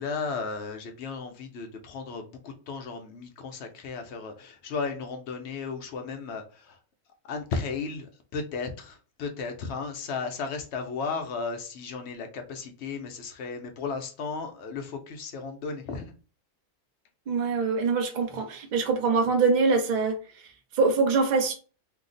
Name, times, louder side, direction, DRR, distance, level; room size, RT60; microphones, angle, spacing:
voice 1, 0.0-6.8 7.2-16.1, left 4 dB, 65° left, 0.7 m, -35 dB
voice 2, 17.3-21.5, right 4 dB, 55° right, 0.5 m, -24 dB
2.8 x 2.0 x 3.8 m
omnidirectional pair, 1.6 m